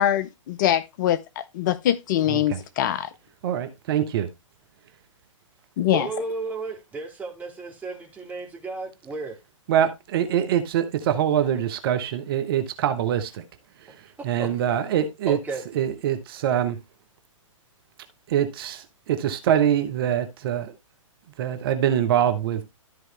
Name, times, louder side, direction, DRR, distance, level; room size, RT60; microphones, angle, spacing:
voice 1, 0.0-3.1 5.8-6.0, left 11 dB, 35° left, 0.5 m, -23 dB
voice 2, 2.3-2.6 3.4-4.3 9.7-13.4 13.8-13.9 14.2-15.4 15.7-16.8 18.3-20.7 21.4-22.6, right 10 dB, 45° right, 1.1 m, -24 dB
voice 3, 5.9-9.4 14.4-14.6 15.3-15.6, right 3 dB, 10° right, 2.4 m, -33 dB
13.0 x 4.6 x 3.3 m
figure-of-eight pair, 115°, 17 cm